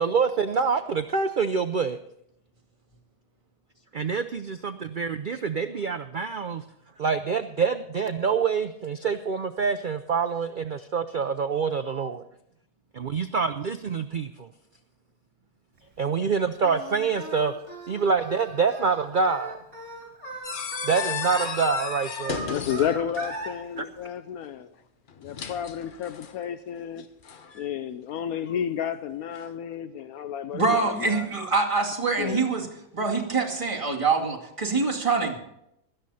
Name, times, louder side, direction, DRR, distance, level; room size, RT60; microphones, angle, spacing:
voice 1, 0.0-2.0 3.9-6.6 7.0-12.2 12.9-14.5 16.0-17.5 17.9-19.6 20.8-22.4 23.8-23.9, right 5 dB, 65° right, 0.5 m, -26 dB
Singing, 16.6-23.5, right 2 dB, 45° right, 4.1 m, -38 dB
sound 1, 20.4-23.5 25.1-26.4 27.2-27.7, left 7 dB, 45° left, 0.7 m, -34 dB
voice 2, 22.5-24.7 25.2-27.1 27.5-31.2 32.2-32.5, left 9 dB, 75° left, 1.1 m, -31 dB
voice 3, 30.5-32.7 32.9-35.4, right 4 dB, 20° right, 2.3 m, -25 dB
16.5 x 12.5 x 4.2 m
omnidirectional pair, 1.6 m